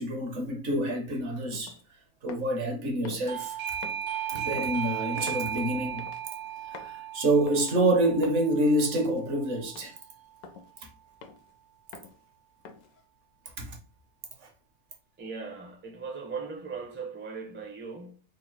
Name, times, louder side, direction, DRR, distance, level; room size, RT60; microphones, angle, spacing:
voice 1, 0.0-1.8 2.2-3.8 4.3-6.1 6.6-9.9 10.8-10.9 13.6-13.8 14.4-14.5, right 1 dB, 60° right, 1.1 m, -27 dB
sound 1, 1.5-1.8 2.3-2.6 3.1-3.3 3.8-4.1 4.5-4.8 5.3-5.5 6.0-6.2 6.7-7.0 7.5-7.8 8.2-8.5 9.0-9.2 9.8-10.0 10.4-10.7 11.2-11.5 11.9-12.2 12.7-13.0, left 5 dB, 90° left, 1.1 m, -46 dB
Doorbell, 3.3-9.8, right 9 dB, 85° right, 1.5 m, -36 dB
voice 2, 15.2-18.2, right 5 dB, 15° right, 0.4 m, -38 dB
3.9 x 2.1 x 4.4 m
omnidirectional pair, 1.5 m